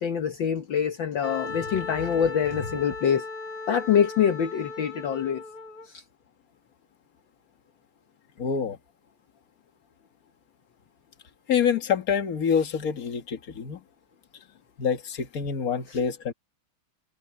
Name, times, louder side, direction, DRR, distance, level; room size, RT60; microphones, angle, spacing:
voice 1, 0.0-3.3 3.7-5.4, left 8 dB, 65° left, 1.8 m, -25 dB
Wind instrument woodwind instrument, 1.2-5.9, left 3 dB, 85° left, 5.3 m, -37 dB
voice 2, 8.4-8.8 11.5-13.8 14.8-16.3, left 7 dB, 45° left, 1.9 m, -26 dB
omnidirectional pair, 2.4 m